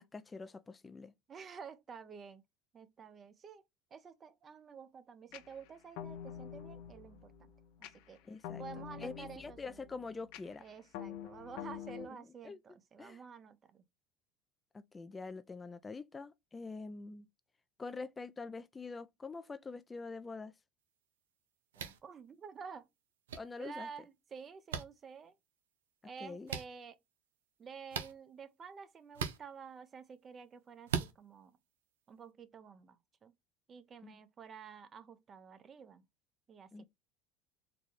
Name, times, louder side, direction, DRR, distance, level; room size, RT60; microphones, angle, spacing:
voice 1, 0.0-1.1 8.3-10.6 12.1-12.2 12.4-12.6 13.0-13.2 14.7-17.3 17.8-20.5 23.3-23.9 26.2-26.5 34.0-34.2 36.7-36.8, left 4 dB, 20° left, 0.3 m, -45 dB
voice 2, 1.3-2.4 2.7-3.6 3.9-7.5 7.8-8.2 8.6-9.8 10.6-13.8 21.8-22.9 23.6-25.4 26.0-27.0 27.6-31.6 32.1-33.3 33.7-36.0 36.5-36.8, right 6 dB, 35° right, 0.6 m, -50 dB
sound 1, 5.3-12.1, left 9 dB, 70° left, 0.5 m, -47 dB
sound 2, 21.7-22.0 23.3-23.4 24.7-24.8 26.5-26.7 27.9-28.1 29.1-29.4 30.9-31.1, right 7 dB, 90° right, 0.5 m, -36 dB
3.9 x 2.2 x 3.1 m
hypercardioid pair, 85°, 0 cm